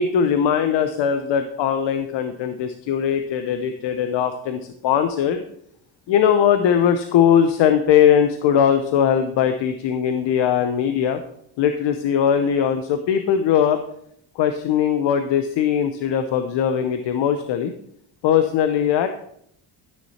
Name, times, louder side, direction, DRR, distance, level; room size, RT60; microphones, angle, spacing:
voice 1, 0.0-5.4 6.1-11.2 11.6-13.8 14.4-17.7 18.2-19.1, left 8 dB, 75° left, 8 dB, 0.8 m, -20 dB
12.5 x 6.5 x 4.2 m, 0.72 s
cardioid pair, 80°, 43 cm